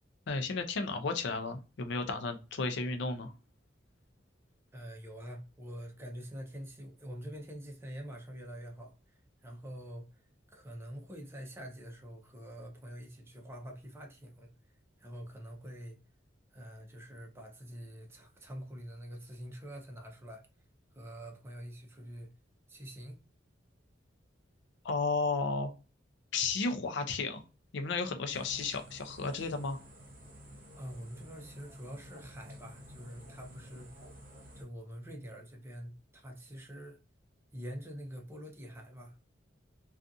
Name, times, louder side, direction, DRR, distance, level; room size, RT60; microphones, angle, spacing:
voice 1, 0.3-3.3 24.8-25.7 26.3-27.4 27.7-29.8, left 4 dB, 65° left, 0.5 m, -33 dB
voice 2, 4.7-10.2 10.5-14.5 15.0-16.0 16.5-20.5 20.9-22.3 22.7-23.2 30.8-34.1 34.5-37.0 37.5-39.3, equal, 15° right, 0.6 m, -46 dB
sound 1, 28.3-34.6, equal, 50° right, 0.8 m, -52 dB
2.4 x 2.4 x 2.6 m
head